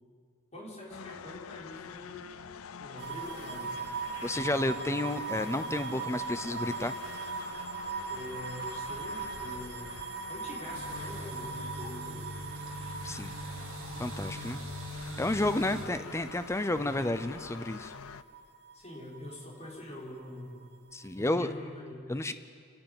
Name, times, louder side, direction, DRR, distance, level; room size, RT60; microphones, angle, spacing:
voice 1, 0.5-2.3 2.8-3.8 8.1-9.9 10.3-12.4 15.6-16.1 18.7-20.6 21.2-22.1, left 1 dB, 30° left, -5 dB, 5.3 m, -44 dB
sound 1, 0.9-18.2, left 6 dB, 70° left, 0.5 m, -46 dB
sound 2, 3.0-19.9 20.2-21.2, right 5 dB, 55° right, 1.3 m, -41 dB
voice 2, 4.2-6.9 13.0-13.3 14.0-14.6 15.2-17.9 20.9-21.5 22.1-22.3, left 1 dB, 15° left, 11 dB, 0.6 m, -31 dB
sound 3, 10.7-15.9, right 1 dB, 70° right, 2.5 m, -42 dB
29.0 x 10.5 x 9.0 m, 2.2 s
head